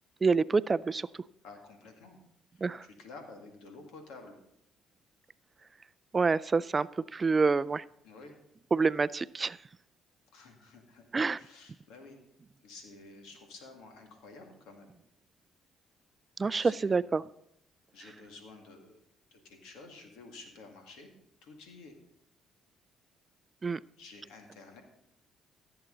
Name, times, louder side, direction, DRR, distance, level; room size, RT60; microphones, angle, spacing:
voice 1, 0.2-1.1 2.6-2.9 6.1-7.8 8.7-9.6 11.1-11.4 16.4-17.2 23.6-23.8, right 4 dB, 35° right, 19 dB, 0.3 m, -27 dB
voice 2, 1.4-2.2 2.5-4.4 8.0-8.4 10.3-12.2 12.6-14.9 16.6-17.0 17.9-19.0 19.3-21.1 21.4-21.9 24.0-24.8, left 3 dB, 80° left, 4 dB, 2.1 m, -51 dB
15.5 x 7.9 x 3.9 m, 0.78 s
supercardioid pair, 60°, 0 cm